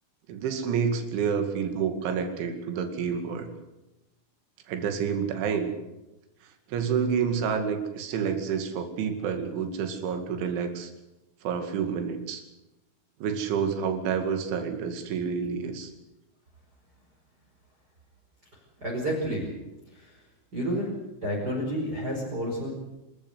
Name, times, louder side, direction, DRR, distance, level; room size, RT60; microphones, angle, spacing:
voice 1, 0.3-3.5 4.7-5.7 6.7-10.9 11.4-12.4 13.2-15.9, right 6 dB, 70° right, 6 dB, 4.5 m, -29 dB
voice 2, 18.8-19.4 19.9-20.1 20.5-20.9 21.2-22.8, equal, 20° right, -2 dB, 5.0 m, -30 dB
28.0 x 13.5 x 8.1 m, 0.97 s
omnidirectional pair, 5.8 m